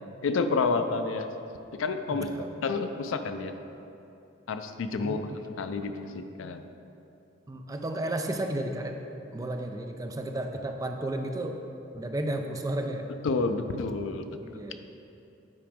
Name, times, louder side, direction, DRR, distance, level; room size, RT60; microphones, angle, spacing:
voice 1, 0.2-1.3 1.8-2.3 2.6-3.5 4.5-5.2 5.6-6.6 13.2-14.3, left 4 dB, 85° left, 8 dB, 0.4 m, -29 dB
voice 2, 2.1-2.5 5.0-5.4 7.5-9.0 9.3-11.6 11.9-13.1 14.4-14.8, right 1 dB, 20° right, 4 dB, 0.4 m, -33 dB
8.6 x 5.0 x 3.6 m, 2.8 s
head